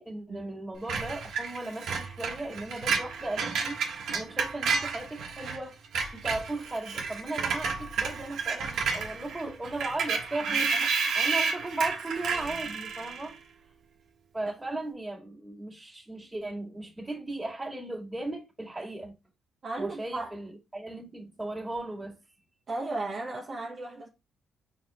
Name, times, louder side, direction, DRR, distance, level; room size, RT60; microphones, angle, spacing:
voice 1, 0.0-3.8 4.1-5.8 6.1-13.3 14.3-19.1 19.8-22.2, right 2 dB, 15° right, 1.9 m, -36 dB
Screech, 0.9-5.6 5.8-13.3, right 5 dB, 70° right, 1.2 m, -31 dB
voice 2, 10.5-10.9 14.6-14.8 19.6-20.3 22.7-24.1, right 2 dB, 45° right, 1.0 m, -36 dB
4.8 x 3.4 x 3.0 m
cardioid pair, 90°, 0 cm